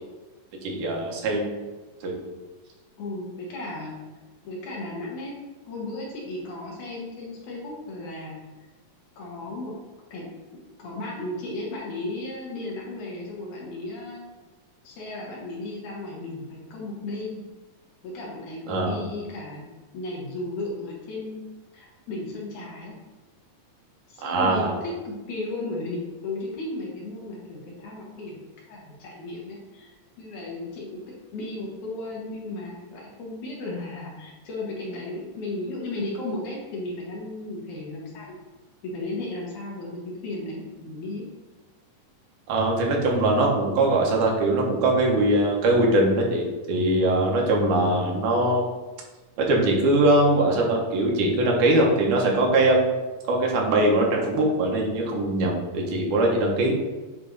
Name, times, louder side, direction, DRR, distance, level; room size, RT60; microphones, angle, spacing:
voice 1, 0.6-1.5 2.0-2.2 18.7-19.0 24.2-24.7 42.5-48.6 49.4-52.9 53.3-56.8, right 1 dB, 75° right, -1 dB, 2.5 m, -21 dB
voice 2, 3.0-4.0 4.4-8.4 9.2-9.7 10.1-10.3 10.5-14.3 14.8-17.4 18.0-19.7 19.9-21.4 21.7-22.9 24.1-38.4 38.8-41.2, left 2 dB, 65° left, -3 dB, 2.7 m, -35 dB
9.1 x 3.3 x 4.0 m, 1.2 s
omnidirectional pair, 3.8 m